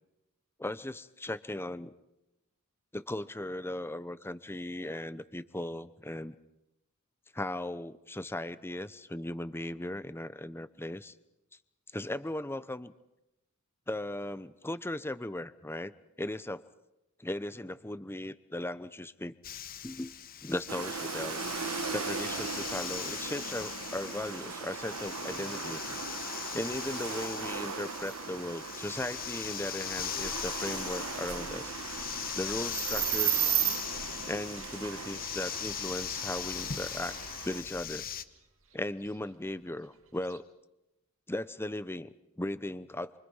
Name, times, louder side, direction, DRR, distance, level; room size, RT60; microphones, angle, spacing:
voice 1, 0.6-1.9 2.9-6.3 7.3-11.1 11.9-12.9 13.9-15.9 16.2-16.6 17.2-19.3 19.8-20.1 20.4-21.4 21.9-26.0 26.5-31.7 32.4-33.5 34.3-37.2 37.4-38.1 38.7-40.5 41.3-43.2, left 1 dB, 10° left, 14 dB, 0.8 m, -37 dB
sound 1, 19.4-38.2, left 9 dB, 40° left, 1.0 m, -40 dB
sound 2, 20.7-37.6, right 9 dB, 80° right, 1.3 m, -37 dB
sound 3, 30.0-40.4, right 2 dB, 60° right, 2.8 m, -55 dB
27.5 x 24.5 x 5.7 m, 0.93 s
head